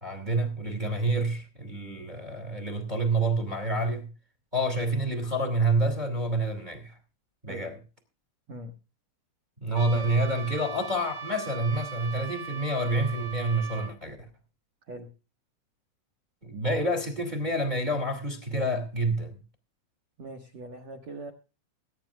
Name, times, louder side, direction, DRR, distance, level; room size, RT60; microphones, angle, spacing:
voice 1, 0.0-4.1 4.5-7.0 7.4-7.7 9.6-14.2 16.4-19.4, right 1 dB, 25° right, 0.8 m, -28 dB
Trumpet, 9.7-13.9, right 6 dB, 45° right, 3.8 m, -39 dB
voice 2, 20.2-21.3, right 2 dB, 70° right, 1.6 m, -41 dB
23.5 x 11.0 x 2.5 m
omnidirectional pair, 5.9 m